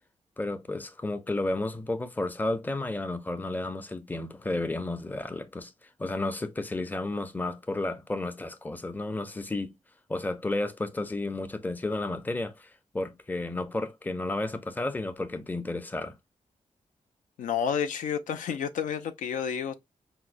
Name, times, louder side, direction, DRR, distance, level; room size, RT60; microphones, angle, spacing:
voice 1, 0.4-9.7 10.1-16.2, left 2 dB, 15° left, 0.5 m, -32 dB
voice 2, 17.4-19.7, left 8 dB, 85° left, 0.4 m, -30 dB
4.6 x 2.0 x 2.5 m
cardioid pair, 70°, 13 cm